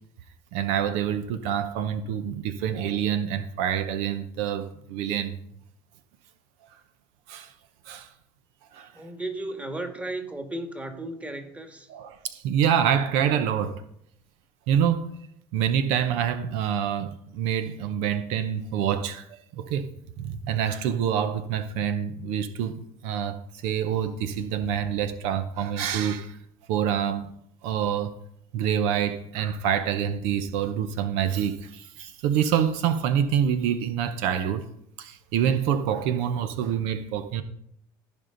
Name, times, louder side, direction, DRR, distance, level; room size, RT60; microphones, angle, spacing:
voice 1, 0.5-5.4 7.3-7.5 7.8-8.1 8.7-9.0 11.9-13.8 14.7-15.1 15.5-19.9 20.2-26.4 26.7-27.3 27.6-28.1 28.5-34.7 35.0-37.4, right 8 dB, 70° right, 0.8 m, -26 dB
voice 2, 8.9-11.9, right 2 dB, 10° right, 1.8 m, -35 dB
15.5 x 5.4 x 3.9 m
supercardioid pair, 90°, 12 cm